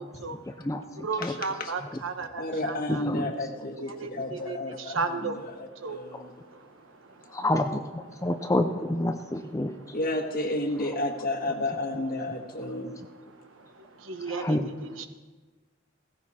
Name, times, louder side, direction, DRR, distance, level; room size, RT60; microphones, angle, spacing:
voice 1, 0.0-0.4 1.0-3.0 3.8-7.4 8.1-8.3 9.6-10.0 13.3-15.1, right 4 dB, 80° right, 7 dB, 1.2 m, -36 dB
voice 2, 2.4-6.3 9.9-13.0, left 1 dB, 50° left, 4 dB, 1.6 m, -32 dB
voice 3, 2.9-3.3 7.3-9.7 14.3-14.7, left 1 dB, 15° left, 6 dB, 0.6 m, -28 dB
16.0 x 15.5 x 4.3 m, 1.3 s
head